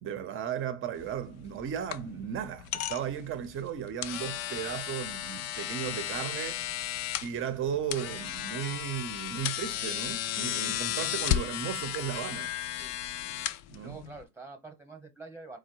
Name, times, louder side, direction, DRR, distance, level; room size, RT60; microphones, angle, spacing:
voice 1, 0.0-6.6 7.2-12.5 13.7-14.0, right 9 dB, 25° right, 0.8 m, -35 dB
sound 1, 1.0-14.2, left 12 dB, 35° left, 0.4 m, -35 dB
voice 2, 13.7-15.6, right 3 dB, 5° right, 1.1 m, -46 dB
4.4 x 2.3 x 4.5 m
hypercardioid pair, 105°, 47 cm